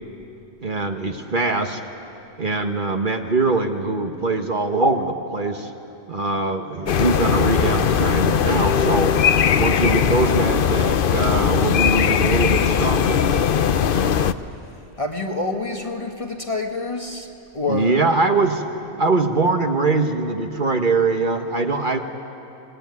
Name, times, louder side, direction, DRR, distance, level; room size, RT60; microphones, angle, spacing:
voice 1, 0.6-1.8 2.4-5.7 6.1-9.1 9.6-13.2 17.7-18.6 19.0-22.0, right 3 dB, 45° right, 4 dB, 1.4 m, -22 dB
sound 1, 6.9-14.3, left 7 dB, 50° left, 0.8 m, -19 dB
voice 2, 15.0-18.0, left 3 dB, 25° left, 3 dB, 1.5 m, -27 dB
26.0 x 20.5 x 9.5 m, 2.8 s
omnidirectional pair, 1.3 m